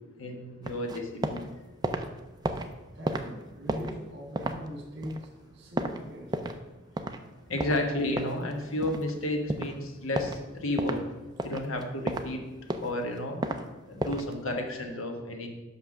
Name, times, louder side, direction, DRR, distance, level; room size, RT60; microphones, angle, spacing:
voice 1, 0.2-1.4 7.5-11.0 11.4-12.4 12.8-13.4 13.9-15.5, left 1 dB, 85° left, 3 dB, 1.3 m, -32 dB
sound 1, 0.6-1.5 1.7-6.7 7.0-7.2 7.6-9.2 9.5-9.8 10.2-10.4 10.8-11.0 11.4-12.3 12.6-13.6 14.0-14.3, right 2 dB, 20° right, 0.4 m, -33 dB
voice 2, 2.9-6.5, equal, 55° right, 3 dB, 1.6 m, -42 dB
5.9 x 5.5 x 6.2 m, 1.2 s
head